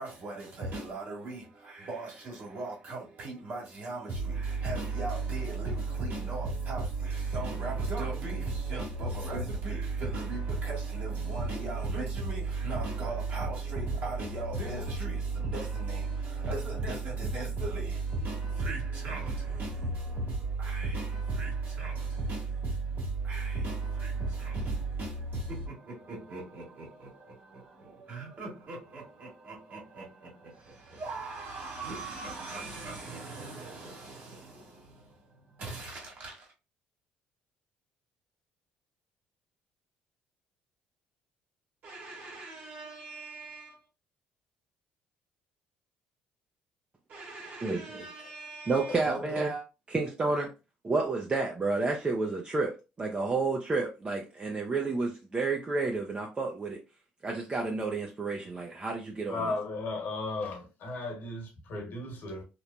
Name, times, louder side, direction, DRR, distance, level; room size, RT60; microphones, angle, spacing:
voice 1, 0.0-36.5 41.8-43.8 47.1-49.6, right 3 dB, 50° right, 1.5 m, -35 dB
voice 2, 48.7-49.5 49.9-50.5 50.8-52.7 53.0-56.8 57.2-59.5, right 3 dB, 25° right, 0.5 m, -30 dB
voice 3, 59.3-62.4, left 3 dB, 60° left, 1.1 m, -35 dB
3.0 x 2.1 x 2.5 m
supercardioid pair, 75°, 4 cm